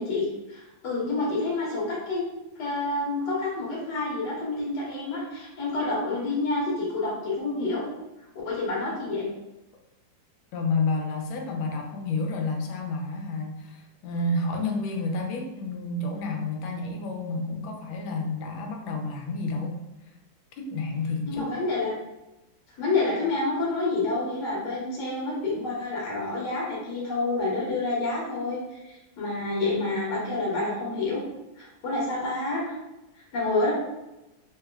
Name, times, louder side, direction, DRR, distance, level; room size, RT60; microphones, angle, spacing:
voice 1, 0.0-2.2 2.6-7.8 8.4-9.3 21.3-21.9 22.8-31.2 31.6-32.7 33.3-33.7, left 2 dB, 60° left, -6 dB, 1.7 m, -28 dB
voice 2, 10.5-19.8 20.6-21.5, left 3 dB, 80° left, 2 dB, 1.4 m, -30 dB
3.3 x 3.2 x 2.2 m, 0.98 s
omnidirectional pair, 2.1 m